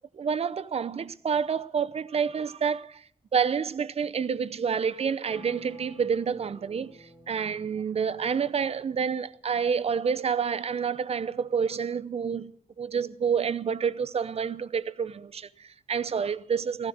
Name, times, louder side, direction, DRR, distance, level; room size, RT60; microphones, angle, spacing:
voice 1, 0.1-3.0 3.3-12.5 12.8-16.9, right 6 dB, 50° right, 0.7 m, -28 dB
sound 1, 5.2-9.0, equal, 15° right, 5.5 m, -51 dB
15.5 x 14.5 x 6.4 m
wide cardioid pair, 120°, 14 cm